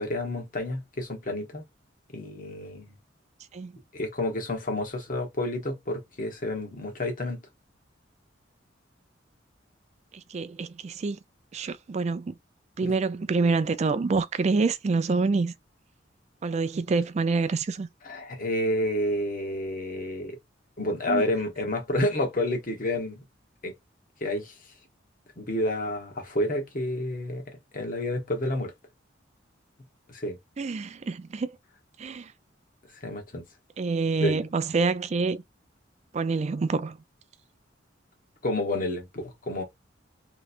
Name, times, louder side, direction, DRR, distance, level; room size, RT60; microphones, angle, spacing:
voice 1, 0.0-1.6 2.1-3.0 3.9-7.4 12.8-12.9 18.0-20.4 20.8-23.2 23.6-23.7 24.2-24.5 25.4-28.7 30.1-30.4 33.0-33.4 34.2-34.4 38.4-39.6, left 1 dB, 45° left, 1.1 m, -29 dB
voice 2, 10.3-11.2 11.5-12.3 12.8-15.5 16.4-17.9 21.1-21.2 30.6-31.5 32.0-32.3 33.8-35.4 36.1-37.0, right 4 dB, 35° right, 0.3 m, -26 dB
3.2 x 3.0 x 2.5 m
head